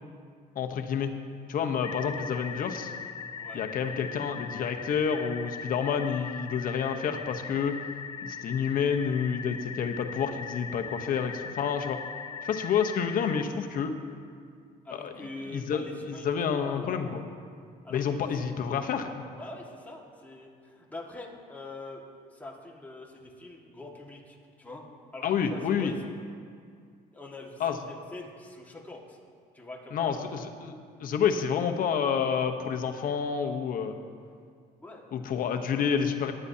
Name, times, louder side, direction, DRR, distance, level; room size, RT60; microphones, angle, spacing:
voice 1, 0.5-1.1 1.5-2.9 3.5-7.7 8.2-12.0 12.4-13.9 14.9-15.1 15.5-15.8 16.1-17.2 17.9-19.1 25.2-25.9 27.6-27.8 29.9-30.7 31.0-34.0 35.1-36.3, left 7 dB, 55° left, 6 dB, 0.9 m, -29 dB
sound 1, 1.8-13.4, left 6 dB, 30° left, 0.3 m, -40 dB
voice 2, 14.8-17.1 17.8-18.4 19.4-22.0 22.3-24.8 25.1-26.0 27.1-29.2 29.5-30.2 34.8-35.0, left 2 dB, 10° left, -2 dB, 1.7 m, -44 dB
18.5 x 9.9 x 2.8 m, 2.2 s
cardioid pair, 110°, 17 cm